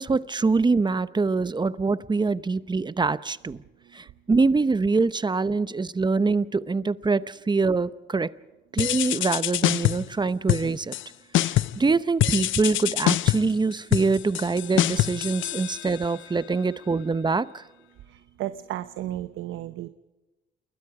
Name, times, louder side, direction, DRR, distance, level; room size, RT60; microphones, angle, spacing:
voice 1, 0.0-3.6 3.9-8.3 8.7-10.9 11.4-17.6, right 4 dB, 20° right, 15 dB, 0.8 m, -24 dB
sound 1, 8.8-10.1 10.5-11.1 11.3-11.8 12.2-16.2, left 15 dB, 80° left, 0.6 m, -25 dB
voice 2, 18.4-19.9, right 13 dB, 85° right, 11 dB, 0.9 m, -33 dB
29.0 x 21.5 x 4.9 m, 1.1 s
cardioid pair, 90°, 20 cm